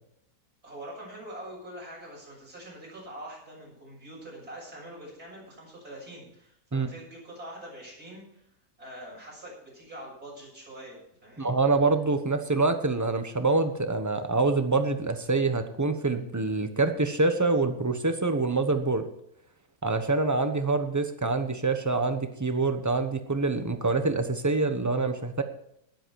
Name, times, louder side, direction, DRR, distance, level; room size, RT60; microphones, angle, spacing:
voice 1, 0.6-8.4 8.8-11.5, right 1 dB, 60° right, -4 dB, 7.4 m, -44 dB
voice 2, 11.4-19.0 19.8-25.4, right 3 dB, 15° right, 7 dB, 0.8 m, -26 dB
19.5 x 7.8 x 4.7 m, 0.74 s
omnidirectional pair, 1.8 m